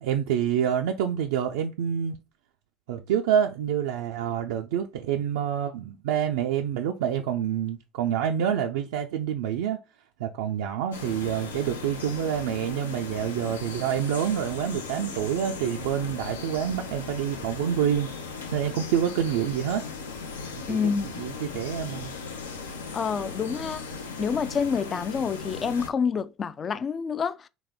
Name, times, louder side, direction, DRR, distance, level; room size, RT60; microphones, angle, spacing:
voice 1, 0.0-2.2 2.9-9.8 10.2-19.9 20.6-20.8 21.2-22.1, right 9 dB, 75° right, 0.3 m, -27 dB
sound 1, 10.9-25.9, left 4 dB, 85° left, 0.5 m, -37 dB
voice 2, 20.7-21.2 22.9-23.8 24.2-27.5, left 6 dB, 35° left, 0.3 m, -28 dB
4.0 x 2.2 x 3.4 m
hypercardioid pair, 70°, 0 cm